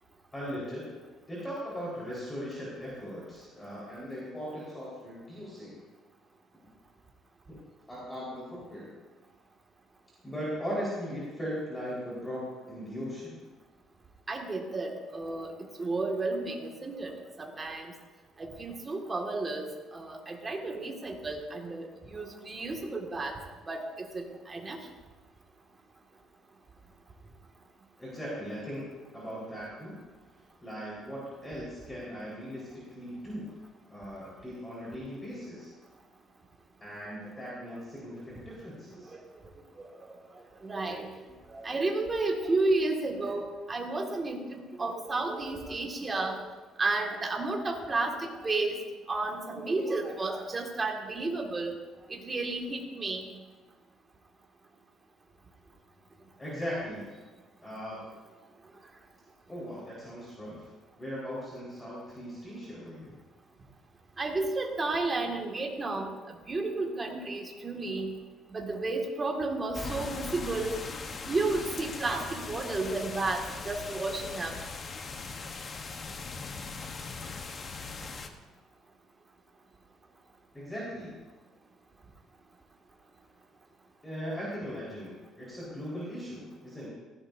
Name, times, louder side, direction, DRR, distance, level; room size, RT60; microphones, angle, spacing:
voice 1, 0.3-0.9 1.3-5.8 7.5-7.6 7.9-9.0 10.2-13.4 28.0-30.0 30.6-33.5 33.9-35.7 36.8-39.1 56.4-57.1 57.6-58.0 59.5-60.7 61.0-63.1 80.5-81.1 84.0-86.9, equal, 10° left, -8 dB, 4.6 m, -39 dB
voice 2, 14.3-15.5 15.8-17.9 18.4-23.3 23.7-24.8 40.6-41.1 41.5-46.4 46.8-48.8 49.1-51.7 52.1-53.3 64.2-66.1 66.5-68.1 68.5-70.9 71.3-74.5, right 3 dB, 20° right, 1 dB, 2.1 m, -32 dB
sound 1, 69.7-78.3, left 4 dB, 35° left, 1.1 m, -40 dB
18.5 x 16.0 x 2.7 m, 1.3 s
cardioid pair, 140°, 0 cm